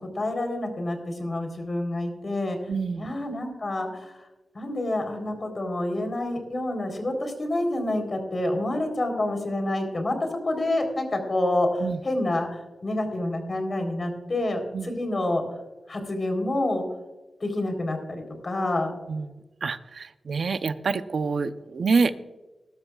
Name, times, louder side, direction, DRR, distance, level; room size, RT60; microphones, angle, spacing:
voice 1, 0.2-2.6 3.0-4.3 4.5-15.4 15.9-16.8 17.4-18.9, left 1 dB, 45° left, 5 dB, 3.8 m, -28 dB
voice 2, 2.7-3.1 11.8-12.0 14.7-14.9 19.1-19.3 19.6-22.1, right 4 dB, 70° right, 11 dB, 0.7 m, -26 dB
19.5 x 12.5 x 2.4 m, 1.1 s
cardioid pair, 65°, 0 cm